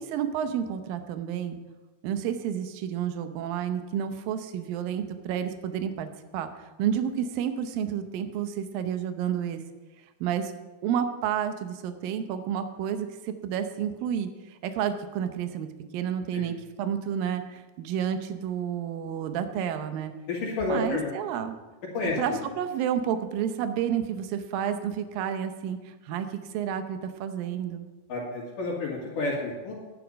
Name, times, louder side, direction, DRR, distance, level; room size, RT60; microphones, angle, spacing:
voice 1, 0.0-1.6 2.0-6.5 6.8-9.6 10.2-10.5 10.8-14.3 14.6-15.7 15.9-20.1 20.7-21.6 22.2-27.9, right 9 dB, 75° right, 8 dB, 2.4 m, -30 dB
voice 2, 20.3-21.1 21.9-22.4 28.1-29.7, left 3 dB, 60° left, -4 dB, 3.3 m, -30 dB
11.0 x 10.0 x 5.2 m, 1.2 s
omnidirectional pair, 4.5 m